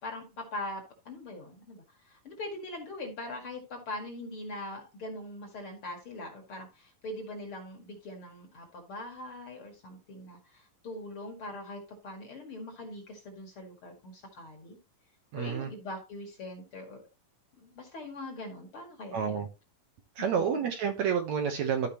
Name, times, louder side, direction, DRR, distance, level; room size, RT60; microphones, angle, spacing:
voice 1, 0.0-14.8 15.3-17.0 17.5-19.4 20.2-20.5, left 1 dB, 45° left, 3 dB, 2.5 m, -42 dB
voice 2, 15.3-15.7 19.1-19.5 20.2-21.9, right 7 dB, 65° right, 4 dB, 2.1 m, -29 dB
13.5 x 5.2 x 2.9 m, 0.28 s
omnidirectional pair, 4.0 m